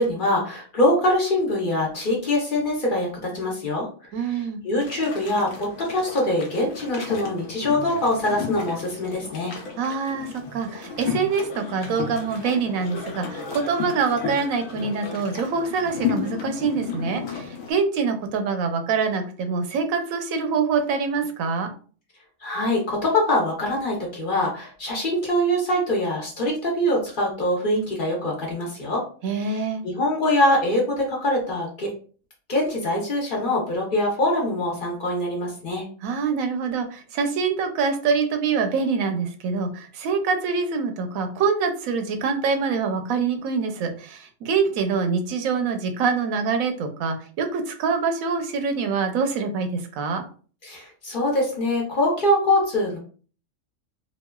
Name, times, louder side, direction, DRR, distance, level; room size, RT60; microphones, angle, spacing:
voice 1, 0.0-3.9 4.3-9.5 22.4-29.0 29.5-29.6 29.8-31.9 32.5-35.8 50.6-53.0, left 1 dB, 45° left, -2 dB, 0.8 m, -23 dB
voice 2, 4.1-4.6 9.8-21.7 29.2-29.8 36.0-50.2, right 5 dB, 90° right, 6 dB, 1.0 m, -25 dB
sound 1, 4.8-17.7, left 6 dB, 85° left, 1.1 m, -33 dB
2.9 x 2.3 x 2.2 m, 0.40 s
omnidirectional pair, 1.4 m